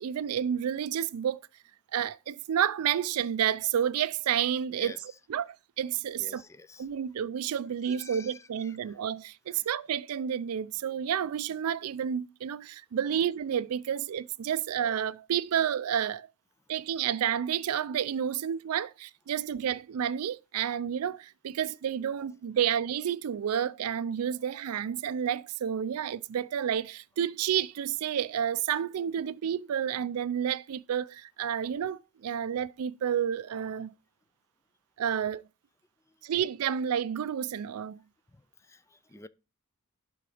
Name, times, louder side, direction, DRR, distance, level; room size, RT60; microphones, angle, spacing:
voice 1, 0.0-1.4 1.9-4.9 5.3-6.4 6.8-16.3 16.7-33.9 35.0-35.4 36.2-38.0, right 9 dB, 85° right, 0.4 m, -30 dB
voice 2, 4.8-5.2 6.2-6.9 7.8-9.0 9.5-9.7 38.3-39.3, left 3 dB, 15° left, 0.3 m, -50 dB
11.5 x 3.9 x 4.8 m
head